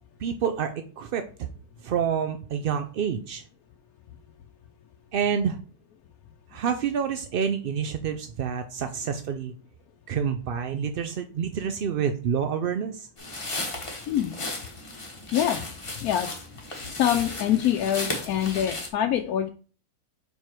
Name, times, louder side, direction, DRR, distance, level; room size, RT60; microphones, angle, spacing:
voice 1, 0.2-1.5 1.8-3.4 5.1-5.6 6.5-9.5 10.1-13.1, right 7 dB, 70° right, 8 dB, 0.5 m, -28 dB
sound 1, 13.2-18.9, left 2 dB, 20° left, 1.2 m, -35 dB
voice 2, 16.9-19.5, left 10 dB, 90° left, 4 dB, 1.1 m, -25 dB
5.4 x 4.7 x 4.5 m, 0.39 s
omnidirectional pair, 1.5 m